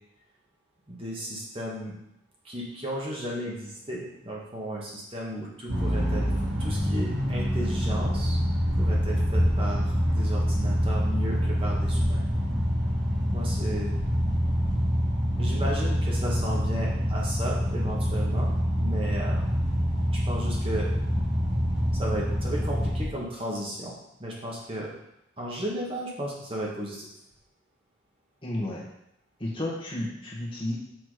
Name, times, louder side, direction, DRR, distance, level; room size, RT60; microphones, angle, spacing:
voice 1, 0.9-1.9 2.4-6.2 6.6-8.4 8.8-12.2 13.3-13.9 15.4-18.5 18.7-19.5 20.1-20.9 21.9-24.9 25.4-27.1, right 1 dB, 30° right, -4 dB, 1.5 m, -34 dB
sound 1, 5.7-23.0, equal, 70° right, 2.2 m, -26 dB
voice 2, 28.4-28.9 29.4-30.7, left 1 dB, 25° left, -5 dB, 1.8 m, -32 dB
6.4 x 6.0 x 4.9 m, 0.79 s
head